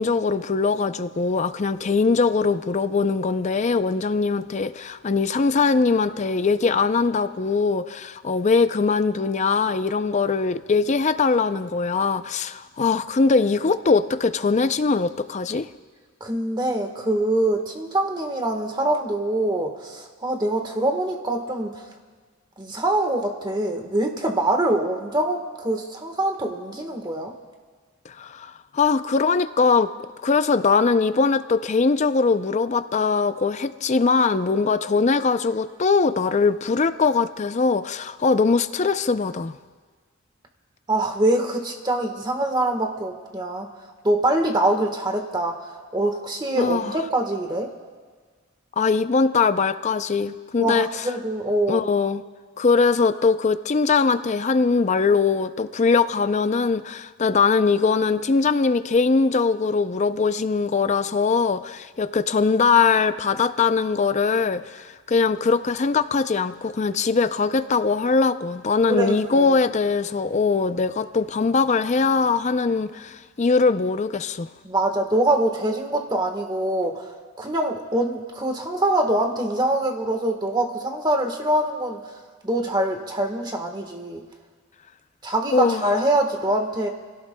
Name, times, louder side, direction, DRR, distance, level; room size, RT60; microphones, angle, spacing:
voice 1, 0.0-15.7 28.1-29.9 30.2-39.6 46.6-47.0 48.8-51.0 51.7-52.2 52.6-74.5 85.5-85.8, left 4 dB, 35° left, 12 dB, 0.4 m, -21 dB
voice 2, 16.2-21.8 22.6-27.3 40.9-43.7 44.0-45.6 45.9-47.7 50.6-51.9 68.9-69.5 74.6-77.1 77.4-82.0 82.4-84.2 85.2-86.9, right 1 dB, 20° right, 4 dB, 1.3 m, -24 dB
28.5 x 17.0 x 2.2 m, 1.5 s
head